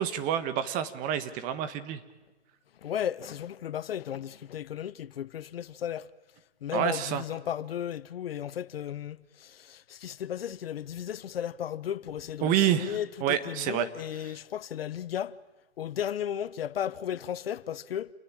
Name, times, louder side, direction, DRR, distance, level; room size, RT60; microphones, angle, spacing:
voice 1, 0.0-2.0 6.7-7.2 12.4-13.9 14.2-14.4, right 10 dB, 25° right, 1.6 m, -28 dB
voice 2, 2.8-6.1 6.6-15.3 15.8-18.1, left 10 dB, 60° left, 1.0 m, -35 dB
29.0 x 20.0 x 8.8 m
hypercardioid pair, 140°, 33 cm